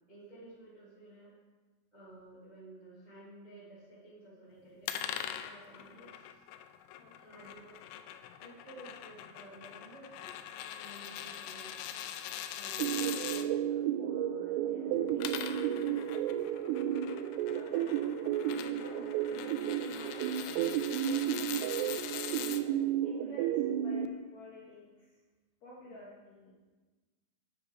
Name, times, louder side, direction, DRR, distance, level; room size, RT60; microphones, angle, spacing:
voice 1, 0.1-1.3 1.9-6.3 7.1-8.0 8.4-10.4 10.8-11.9 12.5-15.8 25.8-26.1, right 2 dB, 65° right, -7 dB, 0.4 m, -53 dB
sound 1, 4.9-13.5 15.0-22.6, left 10 dB, 80° left, 2.6 m, -42 dB
voice 2, 7.0-7.4 16.5-17.2 17.5-19.6 19.9-21.9 23.0-25.2 25.6-26.5, left 1 dB, 65° left, -6 dB, 1.7 m, -53 dB
sound 2, 12.8-24.1, right 10 dB, 85° right, 2.4 m, -32 dB
9.8 x 7.1 x 4.9 m, 1.3 s
omnidirectional pair, 5.3 m